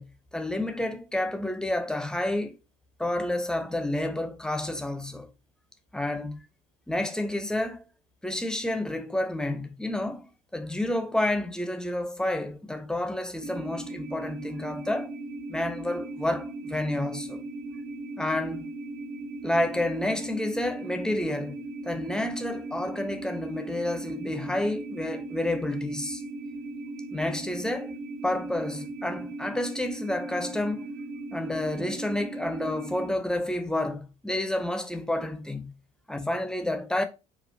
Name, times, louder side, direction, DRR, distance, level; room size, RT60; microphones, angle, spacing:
voice 1, 0.0-2.6 3.0-5.3 5.9-6.4 6.9-7.8 8.2-15.1 15.5-17.4 18.2-18.7 19.4-26.2 27.1-28.0 28.2-30.9 31.3-35.7 36.1-37.0, left 1 dB, 5° left, 0.6 m, -30 dB
sound 1, 13.4-33.1, right 2 dB, 80° right, 1.0 m, -38 dB
5.1 x 2.3 x 2.6 m
figure-of-eight pair, 65°, 20 cm